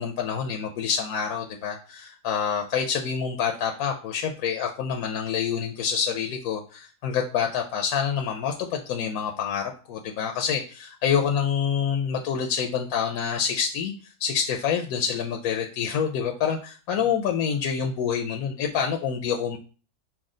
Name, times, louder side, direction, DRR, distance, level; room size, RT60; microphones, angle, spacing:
voice 1, 0.0-19.6, left 7 dB, 70° left, 2 dB, 1.0 m, -27 dB
5.9 x 2.3 x 3.7 m, 0.38 s
omnidirectional pair, 1.7 m